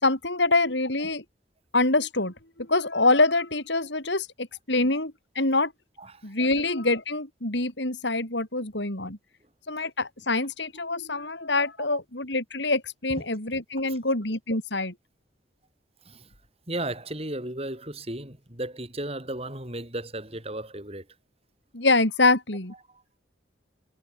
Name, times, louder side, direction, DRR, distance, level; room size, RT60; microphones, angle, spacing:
voice 1, 0.0-1.2 1.7-5.7 6.2-9.2 9.7-14.9 21.7-22.7, left 2 dB, 70° left, 5.3 m, -25 dB
voice 2, 16.7-21.1, right 1 dB, 30° right, 6.9 m, -35 dB
head